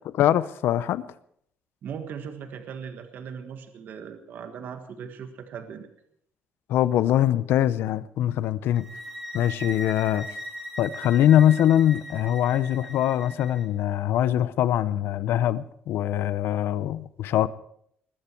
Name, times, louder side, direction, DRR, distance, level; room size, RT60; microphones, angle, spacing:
voice 1, 0.2-1.0 6.7-8.8 9.3-10.3 10.8-17.5, left 11 dB, 75° left, 0.6 m, -23 dB
voice 2, 1.8-5.9, right 7 dB, 55° right, 1.5 m, -38 dB
sound 1, 8.7-13.6, equal, ahead, 2.5 m, -39 dB
20.0 x 15.0 x 4.6 m
cardioid pair, 165°, 4 cm